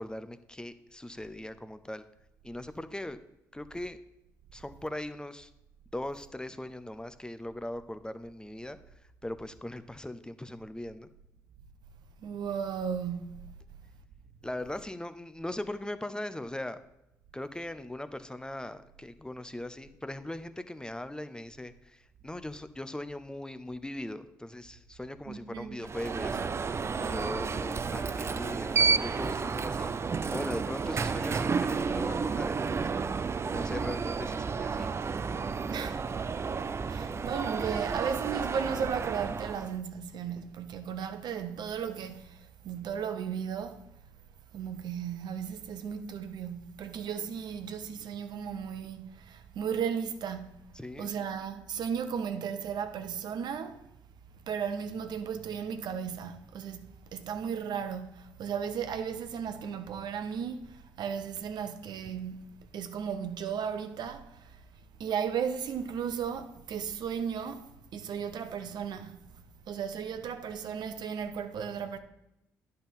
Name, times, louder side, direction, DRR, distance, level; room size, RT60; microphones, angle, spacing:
voice 1, 0.0-2.0 2.4-3.2 3.5-4.0 4.5-5.5 5.9-8.8 9.2-11.1 14.4-16.8 17.3-26.5 27.0-29.9 30.3-32.9 33.4-34.9 50.8-51.1, left 1 dB, 10° left, 0.7 m, -39 dB
voice 2, 12.2-13.4 25.3-25.8 35.7-36.1 36.8-43.8 44.5-50.6 51.0-53.8 54.5-64.6 65.0-69.4 69.7-72.0, right 7 dB, 60° right, 0.8 m, -35 dB
Alarm, 25.8-39.8, right 5 dB, 35° right, 0.4 m, -31 dB
10.5 x 4.5 x 5.3 m
hypercardioid pair, 45°, 8 cm